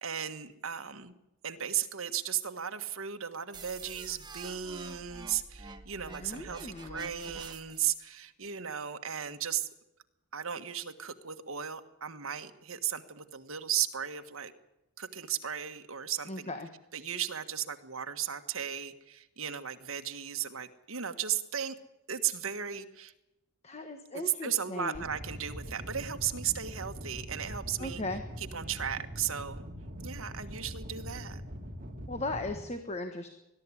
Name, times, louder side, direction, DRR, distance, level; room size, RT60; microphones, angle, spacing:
voice 1, 0.0-1.2 1.4-9.7 10.3-14.5 15.0-16.5 16.9-21.8 22.1-23.1 24.1-28.0 28.4-29.6 30.0-31.4, right 9 dB, 65° right, 8 dB, 1.5 m, -35 dB
sound 1, 3.5-7.9, right 3 dB, 20° right, 1.4 m, -47 dB
voice 2, 6.2-7.1 16.3-16.7 23.6-25.0 27.8-28.2 32.1-33.3, left 2 dB, 30° left, 7 dB, 1.4 m, -37 dB
sound 2, 24.9-32.6, equal, 40° right, 2.7 m, -42 dB
21.0 x 12.5 x 9.8 m, 0.94 s
head